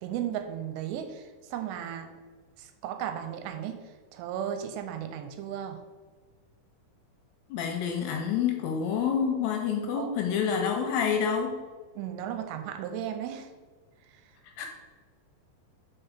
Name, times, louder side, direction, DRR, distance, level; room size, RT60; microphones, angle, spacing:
voice 1, 0.0-2.1 2.6-3.8 4.1-5.8 9.8-10.1 12.0-13.5, right 9 dB, 85° right, 7 dB, 2.7 m, -35 dB
voice 2, 7.5-11.6 14.4-14.7, left 7 dB, 80° left, 3 dB, 2.4 m, -28 dB
6.0 x 4.5 x 5.0 m, 1.4 s
omnidirectional pair, 5.1 m